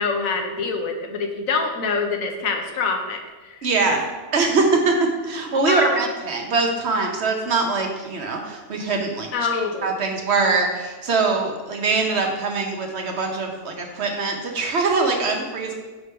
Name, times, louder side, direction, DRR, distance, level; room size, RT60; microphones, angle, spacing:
voice 1, 0.0-3.6 3.9-4.0 5.7-6.0 9.3-10.0, left 4 dB, 75° left, 3 dB, 1.1 m, -25 dB
voice 2, 3.6-4.1 4.3-5.0 5.2-15.7, right 3 dB, 55° right, 2 dB, 0.9 m, -23 dB
5.9 x 3.4 x 5.4 m, 1.3 s
omnidirectional pair, 1.5 m